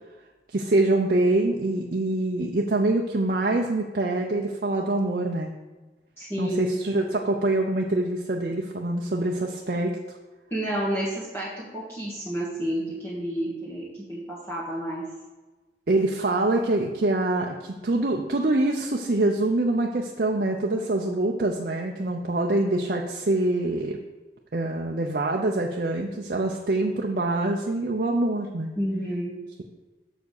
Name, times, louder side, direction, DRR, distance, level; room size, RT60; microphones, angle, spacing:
voice 1, 0.5-5.5 6.4-9.9 15.9-24.0 24.5-28.7, right 2 dB, 50° right, 0 dB, 0.6 m, -25 dB
voice 2, 6.2-6.7 10.5-15.0 28.8-29.3, right 1 dB, 15° left, -8 dB, 1.6 m, -30 dB
6.8 x 4.9 x 6.5 m, 1.2 s
head